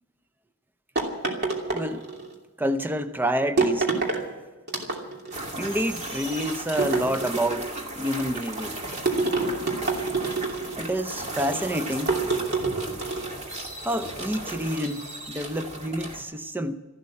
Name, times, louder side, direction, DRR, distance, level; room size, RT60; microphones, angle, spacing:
sound 1, 1.0-2.3 3.6-4.2 4.7-5.4 6.8-7.7 9.1-10.8 12.1-13.4, right 3 dB, 50° right, 2.7 m, -26 dB
voice 1, 1.7-2.0 2.6-3.9 5.6-8.8 10.8-12.2 13.8-16.8, equal, 10° right, 0.6 m, -28 dB
sound 2, 5.3-16.2, right 1 dB, 30° right, 2.4 m, -36 dB
14.5 x 12.0 x 8.4 m
head